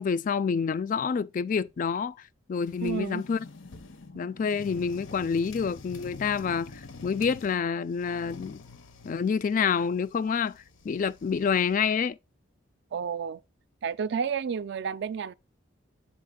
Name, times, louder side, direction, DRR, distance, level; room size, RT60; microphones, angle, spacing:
voice 1, 0.0-2.2 2.5-3.4 4.2-8.6 9.0-12.2, left 6 dB, 40° left, 0.3 m, -28 dB
sound 1, 2.6-4.1 4.5-7.6 7.9-11.8, left 3 dB, 70° left, 0.6 m, -48 dB
voice 2, 2.8-3.2 12.9-13.4 13.8-15.3, right 6 dB, 60° right, 0.3 m, -31 dB
sound 2, 3.2-7.7 9.0-9.1 9.5-11.6, left 3 dB, 90° left, 1.1 m, -51 dB
6.4 x 4.2 x 3.7 m
head